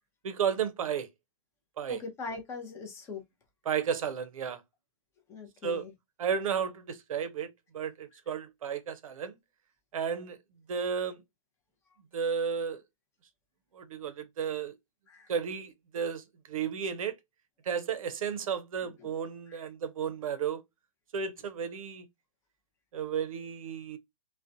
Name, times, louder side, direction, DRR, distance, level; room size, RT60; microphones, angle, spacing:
voice 1, 0.2-1.1 1.8-2.0 3.7-4.6 5.6-5.8 6.2-9.3 9.9-10.4 10.7-11.2 12.1-12.8 13.7-14.7 15.3-17.2 17.7-20.6 21.1-22.1 22.9-24.0, right 7 dB, 70° right, 0.5 m, -33 dB
voice 2, 1.9-3.2 5.3-5.9 15.1-15.3 19.5-19.7, left 4 dB, 15° left, 0.6 m, -41 dB
2.4 x 2.1 x 2.5 m
hypercardioid pair, 145°, 18 cm